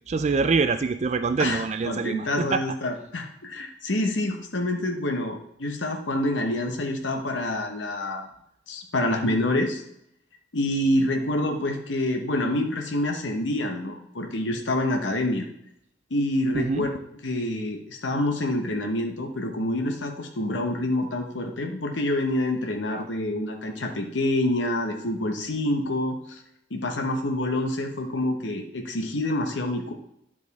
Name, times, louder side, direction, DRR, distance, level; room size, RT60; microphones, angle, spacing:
voice 1, 0.1-2.6 16.5-16.9, right 4 dB, 35° right, 10 dB, 0.4 m, -25 dB
voice 2, 1.4-8.3 8.7-9.8 10.5-15.5 16.1-16.9 17.2-26.4 26.7-29.9, left 1 dB, 80° left, 3 dB, 1.0 m, -27 dB
10.5 x 4.9 x 4.1 m, 0.75 s
head